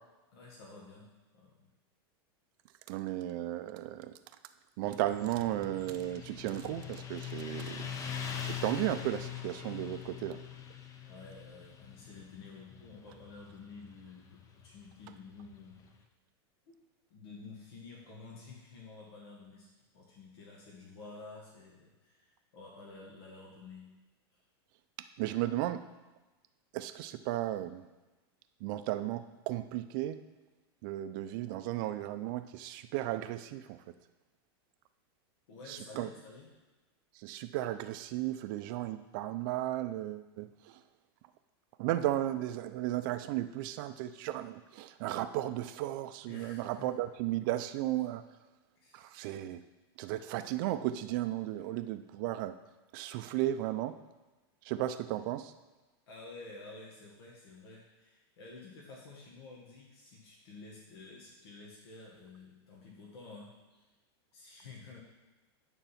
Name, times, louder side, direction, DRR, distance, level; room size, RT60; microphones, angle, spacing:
voice 1, 0.3-1.7 11.0-15.8 16.7-16.8 17.1-23.9 35.5-36.6 46.3-47.0 48.8-49.1 51.6-51.7 56.1-63.9 64.3-65.0, left 3 dB, 75° left, -3 dB, 1.9 m, -51 dB
voice 2, 2.9-4.1 4.8-7.9 8.4-10.4 25.2-25.8 26.7-27.8 28.6-30.2 30.8-33.8 35.7-36.1 37.2-40.5 41.8-48.2 48.9-49.6 50.0-52.5 52.9-54.0 54.7-55.5, right 14 dB, 55° right, 10 dB, 0.5 m, -35 dB
Motorcycle, 4.8-15.9, left 8 dB, 25° left, 0.7 m, -43 dB
9.2 x 3.9 x 5.8 m, 1.2 s
supercardioid pair, 140°, 13 cm